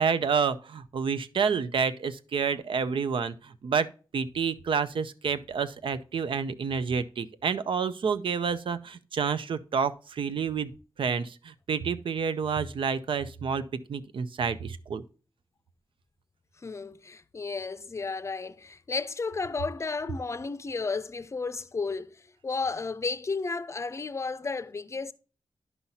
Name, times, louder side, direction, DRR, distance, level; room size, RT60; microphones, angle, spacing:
voice 1, 0.0-3.9 4.1-10.7 11.0-13.6 13.9-15.0, right 6 dB, 85° right, 0.6 m, -29 dB
voice 2, 16.6-25.1, left 4 dB, 35° left, 0.5 m, -33 dB
10.5 x 5.7 x 2.7 m
wide cardioid pair, 110°, 9 cm